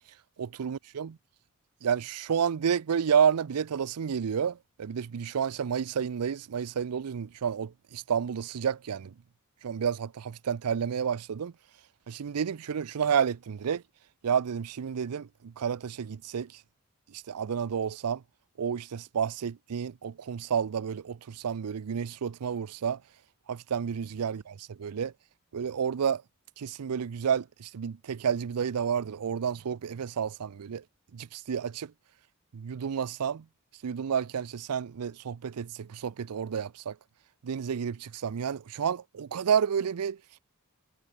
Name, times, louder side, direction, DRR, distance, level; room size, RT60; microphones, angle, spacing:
voice 1, 0.4-1.2 1.8-9.1 9.6-11.5 12.1-13.8 14.2-16.5 17.3-18.2 18.6-23.0 23.5-25.1 25.5-26.2 26.6-30.8 31.1-31.9 32.5-33.4 33.8-36.9 37.4-40.2, right 7 dB, 85° right, 0.5 m, -30 dB
head